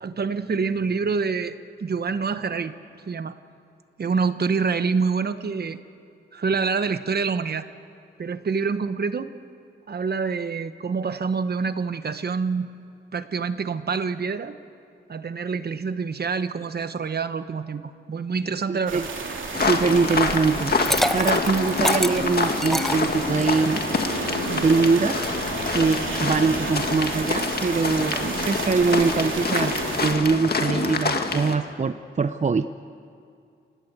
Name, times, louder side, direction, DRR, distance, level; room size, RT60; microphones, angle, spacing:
voice 1, 0.0-2.7 3.1-3.3 4.0-5.8 6.3-7.7 8.2-9.3 9.9-12.7 13.1-14.6 15.1-19.0, right 5 dB, 55° right, 11 dB, 1.1 m, -26 dB
voice 2, 18.7-19.1 19.5-20.7 21.1-23.8 24.5-25.2 25.7-29.7 30.0-32.7, right 4 dB, 35° right, 11 dB, 0.6 m, -23 dB
sound 1, 18.9-30.1, right 4 dB, 75° right, 3.3 m, -32 dB
sound 2, 19.5-31.6, left 4 dB, 50° left, 1.9 m, -26 dB
Liquid, 20.6-23.7, equal, ahead, 0.8 m, -27 dB
29.0 x 19.0 x 8.3 m, 2.4 s
wide cardioid pair, 105°, 20 cm